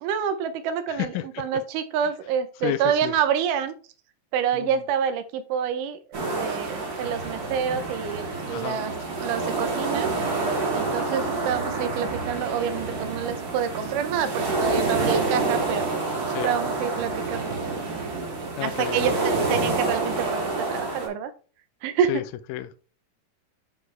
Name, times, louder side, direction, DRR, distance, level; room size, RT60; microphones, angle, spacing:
voice 1, 0.0-3.8 4.3-8.9 9.2-10.1 10.7-15.9 16.4-17.5 18.6-21.3 21.8-22.1, right 8 dB, 85° right, 10 dB, 1.8 m, -27 dB
voice 2, 0.9-1.2 2.6-3.1 4.5-4.8 8.5-8.8 11.0-11.1 16.3-16.5 18.6-19.0 22.1-22.2 22.5-22.8, left 13 dB, 80° left, 10 dB, 2.2 m, -31 dB
sound 1, 6.1-21.1, right 3 dB, 45° right, 1.2 m, -28 dB
9.5 x 4.1 x 3.2 m, 0.37 s
omnidirectional pair, 4.5 m